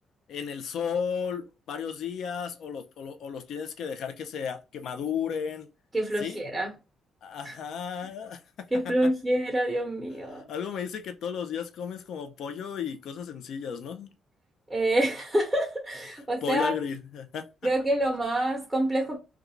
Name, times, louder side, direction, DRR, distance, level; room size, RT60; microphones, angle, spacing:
voice 1, 0.3-5.7 6.2-6.4 7.2-9.1 10.5-14.1 16.4-17.5, left 7 dB, 70° left, 0.5 m, -34 dB
voice 2, 5.9-6.7 7.4-7.5 8.7-10.5 14.7-16.8 17.6-19.2, right 1 dB, 10° right, 0.9 m, -27 dB
2.4 x 2.3 x 2.9 m
cardioid pair, 90°, 0 cm